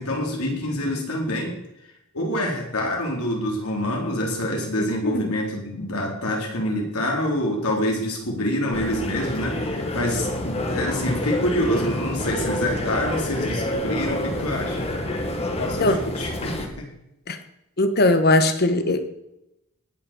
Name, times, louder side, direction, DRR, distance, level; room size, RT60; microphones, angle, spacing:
voice 1, 0.0-1.6 2.1-14.9 15.6-16.9, left 1 dB, 75° left, 0 dB, 4.1 m, -26 dB
voice 2, 4.8-5.3 15.8-16.0 17.3-17.4 17.8-19.1, left 2 dB, 45° left, 9 dB, 1.4 m, -20 dB
sound 1, 8.7-16.7, left 1 dB, 30° left, 1.7 m, -28 dB
18.5 x 6.7 x 7.2 m, 0.87 s
head